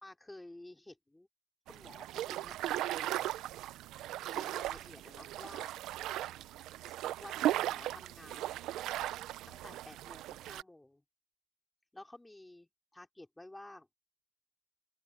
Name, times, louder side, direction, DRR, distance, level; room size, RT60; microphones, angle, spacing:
voice 1, 0.0-1.3 1.7-3.1 4.0-5.7 7.2-8.6 9.5-11.0 11.9-13.9, left 1 dB, 5° left, 3.3 m, -53 dB
sound 1, 1.7-10.6, right 14 dB, 60° right, 0.6 m, -37 dB
open air
cardioid pair, 155°, 0 cm